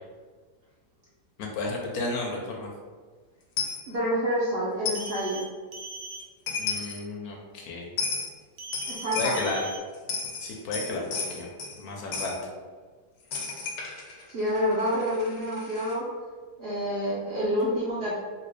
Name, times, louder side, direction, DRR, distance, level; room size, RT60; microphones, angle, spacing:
voice 1, 1.4-2.7 6.6-7.9 9.2-9.6 10.4-11.5 11.8-12.3, left 2 dB, 70° left, 0 dB, 0.9 m, -32 dB
Coin (dropping), 3.6-3.8 4.9-5.1 6.2-6.3 6.5-7.0 8.0-8.3 8.7-9.5 9.9-11.8 12.1-12.4 13.3-16.0, left 5 dB, 90° left, 1.4 m, -33 dB
voice 2, 3.9-5.4 8.9-9.3 14.3-16.0 16.6-18.2, equal, 65° right, -7 dB, 0.6 m, -28 dB
sound 1, 4.9-5.4 5.7-6.2 8.6-9.1 9.3-9.8, right 2 dB, 80° right, 1.2 m, -40 dB
3.0 x 2.8 x 3.2 m, 1.5 s
omnidirectional pair, 1.9 m